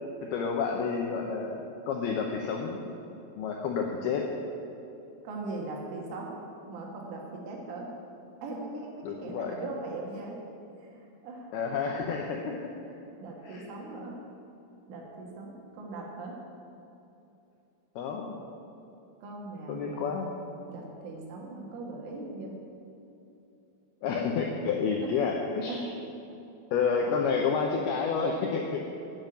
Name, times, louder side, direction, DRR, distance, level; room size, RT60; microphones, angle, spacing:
voice 1, 0.2-2.9 3.4-4.3 9.0-9.6 11.5-12.6 13.5-13.6 18.0-18.4 19.7-20.3 24.0-25.8 26.7-28.8, left 5 dB, 80° left, 1 dB, 2.2 m, -30 dB
voice 2, 5.2-6.3 6.7-7.9 8.4-10.4 10.8-11.5 13.2-14.2 14.9-16.4 19.2-20.0 20.7-22.6 25.0-25.1 25.7-25.9, right 2 dB, 80° right, -1 dB, 4.3 m, -40 dB
8.9 x 8.7 x 9.1 m, 2.8 s
omnidirectional pair, 5.5 m